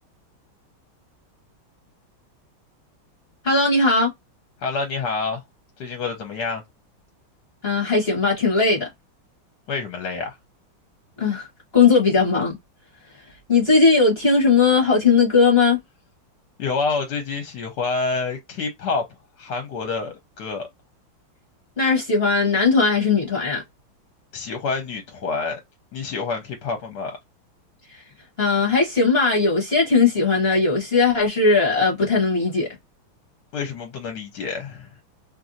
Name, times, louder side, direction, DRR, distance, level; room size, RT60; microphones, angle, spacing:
voice 1, 3.4-4.1 7.6-8.9 11.2-11.5 11.7-12.5 13.5-15.8 21.8-23.6 28.4-32.7, left 4 dB, 40° left, 1.0 m, -18 dB
voice 2, 4.6-5.4 5.8-6.6 9.7-10.4 16.6-20.7 24.3-25.6 25.9-27.2 33.5-35.0, left 4 dB, 65° left, 1.2 m, -28 dB
3.0 x 2.6 x 2.5 m
omnidirectional pair, 2.2 m